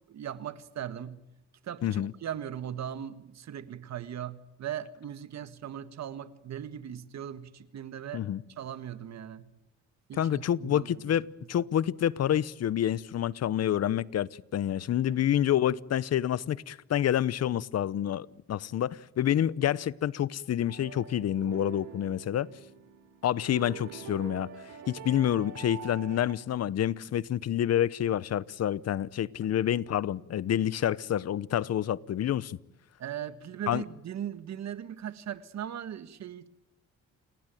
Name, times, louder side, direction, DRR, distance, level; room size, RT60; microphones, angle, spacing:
voice 1, 0.1-1.2 1.6-8.2 8.6-9.5 10.1-11.2 15.1-15.3 33.0-36.5, right 9 dB, 60° right, 1.7 m, -39 dB
voice 2, 10.2-22.5 23.2-24.5 24.9-32.6 33.7-33.8, left 11 dB, 55° left, 0.9 m, -28 dB
sound 1, 20.7-26.3, right 8 dB, 80° right, 3.9 m, -45 dB
29.0 x 18.5 x 9.2 m
cardioid pair, 90°, 30 cm